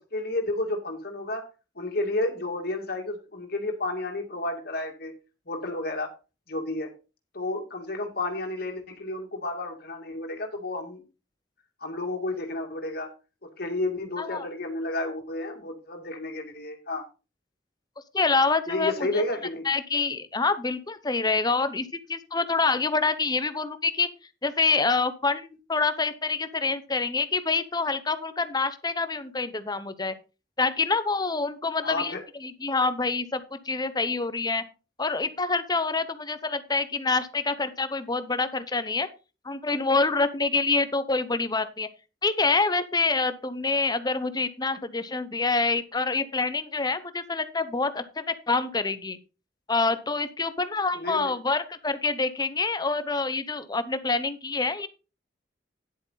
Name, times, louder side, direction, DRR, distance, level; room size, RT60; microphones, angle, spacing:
voice 1, 0.1-1.5 1.8-5.1 5.5-6.1 6.5-6.9 7.3-11.0 11.8-13.1 13.4-17.0 18.7-19.7 31.8-32.2 50.9-51.3, left 2 dB, 55° left, 3 dB, 2.3 m, -31 dB
voice 2, 18.1-19.2 19.6-24.1 24.4-30.1 30.6-32.1 32.4-34.6 35.0-39.1 39.4-41.9 42.2-49.2 49.7-54.9, left 3 dB, 20° left, 12 dB, 0.9 m, -26 dB
10.5 x 7.9 x 4.1 m, 0.31 s
head